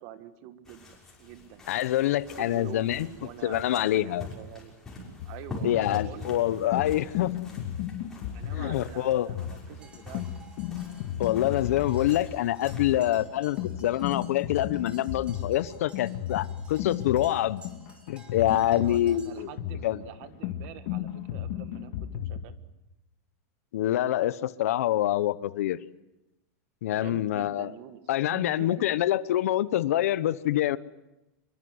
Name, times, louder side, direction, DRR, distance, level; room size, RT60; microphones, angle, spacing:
voice 1, 0.0-1.7 2.3-4.7 5.2-7.1 8.3-10.2 18.6-22.5 26.9-28.9, right 12 dB, 35° right, 12 dB, 1.5 m, -45 dB
sound 1, 0.6-13.4, left 1 dB, 5° left, 6.2 m, -45 dB
voice 2, 1.7-3.1 3.4-4.3 5.6-7.3 8.5-9.3 11.2-17.6 18.1-19.5 19.8-20.0 23.7-25.8 26.8-27.7 28.1-30.8, left 13 dB, 65° left, 17 dB, 1.0 m, -26 dB
sound 2, 5.2-22.4, left 10 dB, 40° left, 2.0 m, -35 dB
sound 3, 9.8-19.4, right 3 dB, 15° right, 3.3 m, -55 dB
26.0 x 23.0 x 8.0 m, 0.94 s
supercardioid pair, 175°, 8 cm